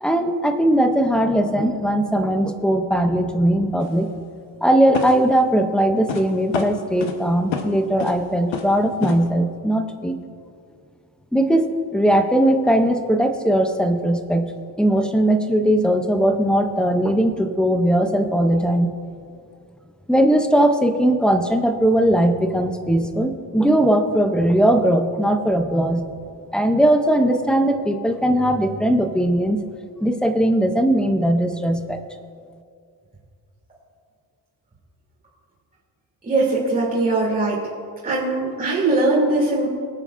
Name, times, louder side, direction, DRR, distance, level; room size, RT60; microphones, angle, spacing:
voice 1, 0.0-4.1 4.6-10.2 11.3-14.5 14.8-18.9 20.1-26.1 26.5-29.6 30.0-32.0, right 1 dB, ahead, 7 dB, 0.4 m, -19 dB
sound 1, 3.8-4.0 4.9-5.3 6.1-6.3 6.5-7.2 7.5-7.7 8.0-8.2 8.5-8.8 9.0-9.2, left 6 dB, 90° left, 1.1 m, -28 dB
voice 2, 36.2-37.6 38.0-39.7, right 2 dB, 20° right, -7 dB, 2.4 m, -20 dB
22.5 x 8.9 x 2.5 m, 2.2 s
wide cardioid pair, 175°, 44 cm